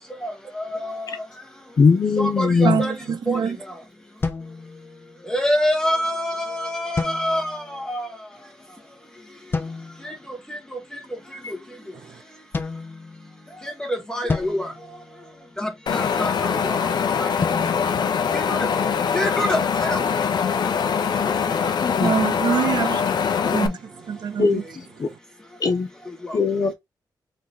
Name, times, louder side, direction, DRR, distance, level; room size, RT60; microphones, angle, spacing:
voice 1, 0.2-1.2 2.2-2.9 3.3-3.4 5.3-8.1 10.0-10.1 10.5-10.6 10.9-11.0 13.6-14.7 15.6-16.9 17.2-17.3 18.3-18.7 19.1-20.0 21.6-21.7 22.5-22.8 23.4-23.6 26.2-26.5, equal, 10° left, 1.4 m, -26 dB
voice 2, 1.8-2.8 21.8-22.2 23.4-23.8 24.4-24.6 25.0-25.1 25.6-25.9 26.3-26.7, left 4 dB, 55° left, 1.3 m, -20 dB
voice 3, 2.6-3.6 12.0-12.2 22.0-23.1 23.5-24.7 25.1-25.2, right 7 dB, 70° right, 0.8 m, -25 dB
sound 1, 4.2-5.3 7.0-7.8 9.5-10.2 12.5-13.6 14.3-15.8 17.4-18.9, left 4 dB, 30° left, 0.7 m, -32 dB
Wind, 15.9-23.7, left 6 dB, 70° left, 0.7 m, -23 dB
3.8 x 3.3 x 4.0 m
wide cardioid pair, 115°, 8 cm